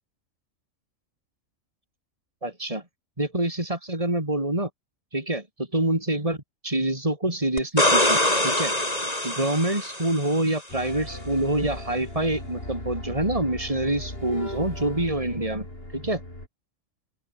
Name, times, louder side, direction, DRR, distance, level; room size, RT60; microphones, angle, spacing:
voice 1, 2.4-2.8 3.2-4.7 5.1-8.2 8.4-8.7 9.2-15.7 15.9-16.2, right 1 dB, 25° right, 5.0 m, -26 dB
sound 1, 7.6-10.4 13.2-13.3, left 1 dB, 30° left, 6.0 m, -23 dB
sound 2, 10.7-16.5, left 1 dB, 45° left, 8.1 m, -37 dB
open air
omnidirectional pair, 1.4 m